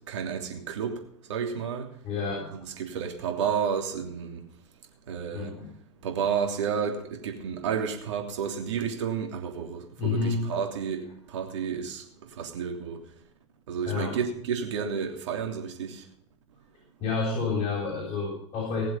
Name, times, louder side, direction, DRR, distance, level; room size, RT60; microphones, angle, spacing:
voice 1, 0.1-1.0 1.3-1.9 2.5-4.4 5.1-5.5 6.0-12.0 12.4-13.0 13.7-16.0, right 7 dB, 70° right, 3.1 m, -31 dB
voice 2, 2.0-2.5 5.3-5.7 10.0-10.4 13.9-14.2 17.0-18.9, left 4 dB, 40° left, 7.7 m, -29 dB
19.5 x 7.7 x 5.6 m
hypercardioid pair, 90°, 16 cm